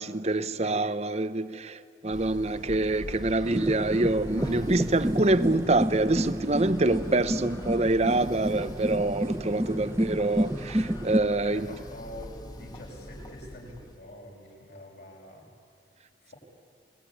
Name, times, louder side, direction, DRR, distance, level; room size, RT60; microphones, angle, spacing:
voice 1, 0.0-11.7, right 2 dB, 40° right, 0.9 m, -26 dB
sound 1, 2.1-14.0, left 1 dB, 25° left, 1.4 m, -43 dB
sound 2, 3.4-11.2, right 1 dB, 15° right, 0.7 m, -30 dB
voice 2, 11.4-15.5 16.2-16.3, equal, 65° left, 7.5 m, -45 dB
28.5 x 20.0 x 9.9 m
head